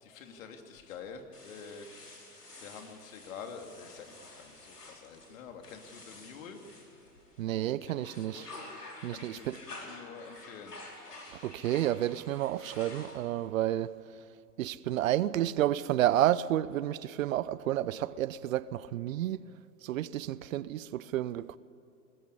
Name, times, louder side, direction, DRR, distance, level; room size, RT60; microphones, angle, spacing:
voice 1, 0.0-1.9 2.6-6.6 7.8-8.6 9.1-10.7, left 6 dB, 60° left, 2.9 m, -47 dB
sound 1, 1.3-7.5 7.9-13.5, left 2 dB, 90° left, 4.9 m, -50 dB
voice 2, 7.4-8.5 9.0-9.6 11.4-13.9 14.6-19.5 19.8-21.6, right 13 dB, 60° right, 0.8 m, -30 dB
21.0 x 20.5 x 8.4 m
hypercardioid pair, 105°, 46 cm